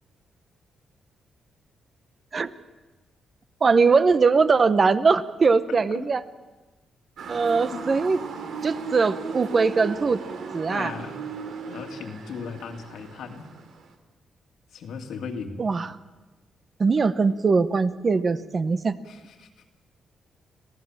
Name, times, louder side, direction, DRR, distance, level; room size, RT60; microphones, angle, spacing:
voice 1, 3.6-6.2 7.3-8.2 8.6-10.2 10.5-10.9 15.6-16.0 16.8-19.0, right 4 dB, 35° right, 13 dB, 0.9 m, -21 dB
voice 2, 5.7-6.0 7.7-7.8 10.7-11.2 11.7-13.5 14.7-15.6 19.1-19.5, left 5 dB, 80° left, 4 dB, 2.5 m, -37 dB
Motor vehicle (road) / Siren, 7.2-13.9, right 5 dB, 80° right, 2.7 m, -36 dB
26.0 x 16.5 x 7.4 m, 1.2 s
cardioid pair, 120°, 0 cm